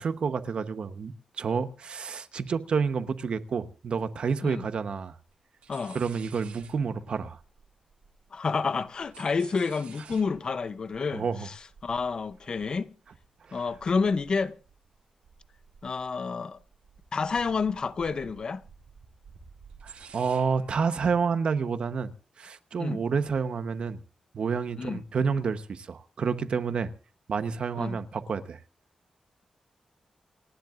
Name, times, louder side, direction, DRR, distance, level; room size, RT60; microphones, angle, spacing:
voice 1, 0.0-5.1 5.9-7.4 11.1-11.5 13.5-13.6 19.8-22.1 22.4-24.0 24.3-26.9 27.3-28.6, right 5 dB, 55° right, 1.0 m, -29 dB
sound 1, 5.3-5.4 5.6-8.4 8.7-15.0 15.2-16.2 16.6-20.9, right 6 dB, 85° right, 2.3 m, -53 dB
voice 2, 8.3-12.9 13.5-14.6 15.8-16.6 17.1-18.6 22.8-23.0 24.8-25.0 27.8-28.0, left 5 dB, 40° left, 0.6 m, -29 dB
28.5 x 10.5 x 2.5 m
wide cardioid pair, 165°, 2 cm